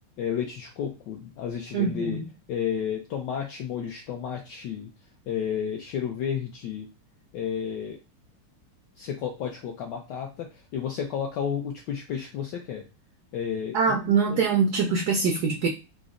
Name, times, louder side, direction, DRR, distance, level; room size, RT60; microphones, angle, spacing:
voice 1, 0.2-2.2 2.5-4.9 5.3-6.9 7.3-8.0 9.0-12.9 13.3-14.4, left 8 dB, 75° left, 2 dB, 1.0 m, -32 dB
voice 2, 1.7-2.2 13.7-15.7, right 5 dB, 85° right, 2 dB, 0.8 m, -23 dB
3.9 x 2.1 x 3.6 m, 0.29 s
omnidirectional pair, 2.3 m